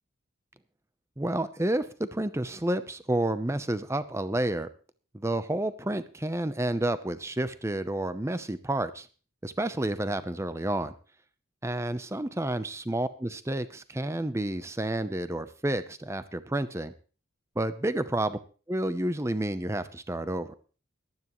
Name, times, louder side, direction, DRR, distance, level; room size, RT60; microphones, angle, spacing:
voice 1, 1.2-4.7 5.1-9.1 9.4-10.9 11.6-16.9 17.6-18.4 18.7-20.5, right 1 dB, 15° right, 13 dB, 0.6 m, -30 dB
18.0 x 12.0 x 3.1 m, 0.37 s
head